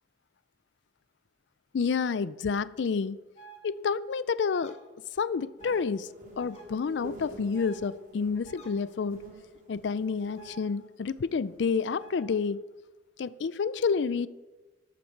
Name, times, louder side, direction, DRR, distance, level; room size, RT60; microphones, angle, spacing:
voice 1, 1.7-3.2 3.6-4.8 5.2-6.1 6.4-9.2 9.7-12.6 13.2-14.3, left 5 dB, 70° left, 0.4 m, -29 dB
sound 1, 3.3-3.6 4.5-4.7 5.6-5.8 6.4-6.6 7.5-7.8 8.4-8.7 10.4-10.6 12.0-12.2, right 3 dB, 35° left, 2.1 m, -49 dB
sound 2, 5.6-12.2, right 1 dB, 45° right, 2.8 m, -48 dB
12.5 x 12.5 x 4.5 m
head